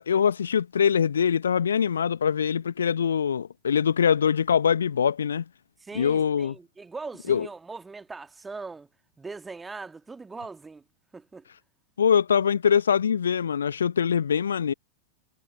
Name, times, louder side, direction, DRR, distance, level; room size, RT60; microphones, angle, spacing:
voice 1, 0.0-5.4 5.9-6.5 7.3-7.5 12.0-14.7, left 7 dB, 70° left, 1.1 m, -23 dB
voice 2, 5.8-8.9 9.2-10.8 11.1-11.4, right 4 dB, 10° right, 1.8 m, -40 dB
figure-of-eight pair, 90°, 0 cm